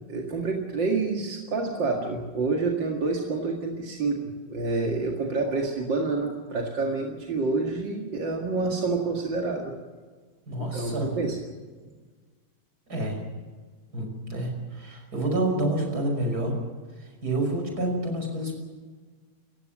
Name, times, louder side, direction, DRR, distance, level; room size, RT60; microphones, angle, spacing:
voice 1, 0.1-9.8 10.6-11.4, right 3 dB, 90° right, 0 dB, 2.8 m, -28 dB
voice 2, 10.5-11.1 12.9-13.2 13.9-16.6 17.0-18.6, right 1 dB, 60° right, 2 dB, 6.2 m, -28 dB
29.0 x 15.5 x 7.4 m, 1.4 s
omnidirectional pair, 1.9 m